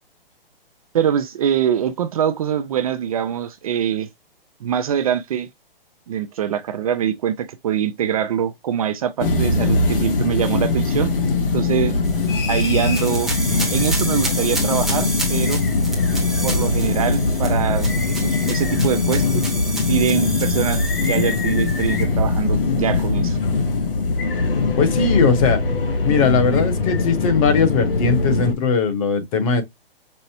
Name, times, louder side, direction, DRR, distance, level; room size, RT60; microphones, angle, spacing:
voice 1, 0.9-4.1 4.6-5.5 6.1-11.1 11.5-11.9 12.5-13.3 13.7-15.6 16.4-19.5 19.9-23.4, right 9 dB, 40° right, 0.5 m, -23 dB
sound 1, 9.2-28.5, left 3 dB, 65° left, 1.4 m, -21 dB
sound 2, 12.0-22.0, right 2 dB, ahead, 0.9 m, -31 dB
voice 2, 24.8-25.6 26.0-29.6, left 5 dB, 35° left, 1.1 m, -19 dB
5.5 x 2.0 x 2.8 m
hypercardioid pair, 145°, 30 cm